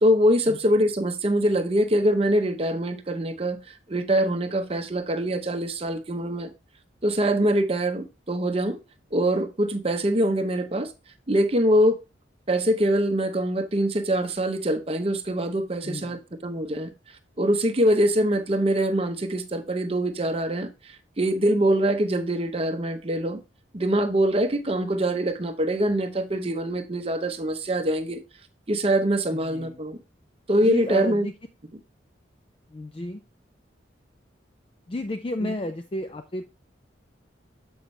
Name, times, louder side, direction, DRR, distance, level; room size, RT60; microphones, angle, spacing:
voice 1, 0.0-3.6 3.9-6.5 7.0-8.8 9.1-10.9 11.3-12.0 12.5-16.9 17.4-23.4 23.7-28.2 28.7-30.0 30.5-31.3 35.4-35.5, right 1 dB, 30° right, 0.7 m, -24 dB
voice 2, 15.8-16.2 29.3-29.8 30.6-31.3 32.7-33.2 34.9-36.4, left 1 dB, 30° left, 0.4 m, -32 dB
7.1 x 5.8 x 3.1 m
head